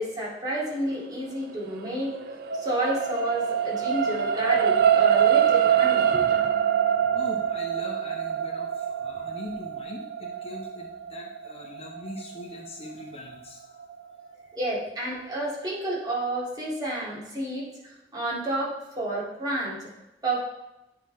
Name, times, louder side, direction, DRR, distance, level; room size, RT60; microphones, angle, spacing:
voice 1, 0.0-2.2 2.5-6.3 14.6-17.7 18.1-19.8 20.2-20.4, right 1 dB, 25° right, -6 dB, 2.1 m, -30 dB
sound 1, 1.7-14.2 14.7-14.8, right 9 dB, 60° right, 0.4 m, -25 dB
voice 2, 7.1-13.9 14.4-14.5, left 1 dB, 35° left, 0 dB, 0.8 m, -41 dB
9.3 x 3.9 x 4.3 m, 0.95 s
head